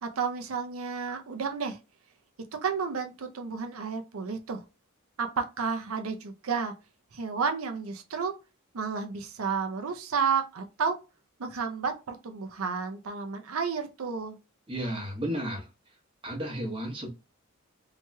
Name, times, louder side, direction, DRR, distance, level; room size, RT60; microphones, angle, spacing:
voice 1, 0.0-1.8 2.6-4.6 5.2-6.7 7.1-8.3 8.7-11.0 11.4-14.4, right 5 dB, 80° right, 5 dB, 0.6 m, -31 dB
voice 2, 14.7-15.7 16.2-17.1, equal, 25° right, -1 dB, 1.0 m, -33 dB
3.1 x 2.8 x 2.2 m, 0.29 s
head